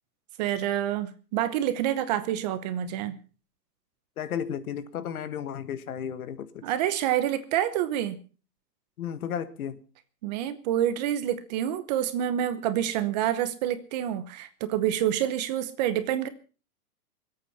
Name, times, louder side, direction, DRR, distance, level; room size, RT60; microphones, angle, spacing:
voice 1, 0.4-3.2 6.6-8.2 10.2-16.3, right 11 dB, 25° right, 12 dB, 0.9 m, -27 dB
voice 2, 4.2-6.6 9.0-9.8, left 8 dB, 60° left, 13 dB, 1.7 m, -33 dB
24.5 x 8.6 x 5.5 m, 0.36 s
hypercardioid pair, 160°, 48 cm